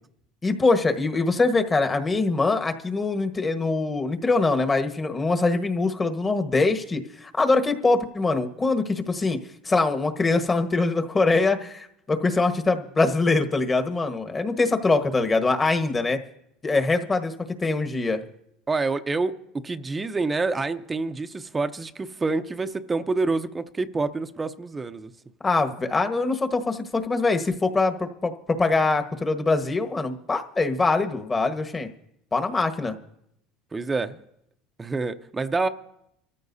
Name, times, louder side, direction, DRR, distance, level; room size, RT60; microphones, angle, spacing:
voice 1, 0.4-9.4 9.6-16.2 16.6-17.3 17.6-18.2 25.4-31.9 32.3-33.0, left 3 dB, 20° left, 1.4 m, -23 dB
voice 2, 18.7-19.3 19.6-25.1 33.7-34.2 34.8-35.7, right 3 dB, 20° right, 0.7 m, -27 dB
24.0 x 14.0 x 2.7 m
supercardioid pair, 100°, 0 cm